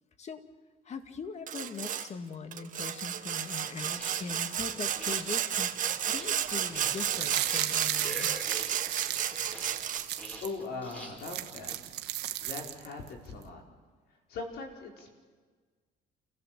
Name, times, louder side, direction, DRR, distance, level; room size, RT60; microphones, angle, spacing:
voice 1, 0.9-8.4, left 5 dB, 40° left, 8 dB, 1.9 m, -41 dB
Sawing, 1.5-2.1 2.5-10.2, right 9 dB, 50° right, 1.5 m, -32 dB
sound 1, 3.9-11.8, equal, 10° left, 5.3 m, -46 dB
sound 2, 6.8-10.5 10.9-11.0 11.2-13.1 13.4-13.5, right 14 dB, 80° right, 1.2 m, -35 dB
voice 2, 10.4-11.8 12.4-13.6 14.3-15.1, left 3 dB, 75° left, 1 dB, 4.7 m, -40 dB
29.0 x 15.5 x 7.5 m, 1.5 s
cardioid pair, 110°, 17 cm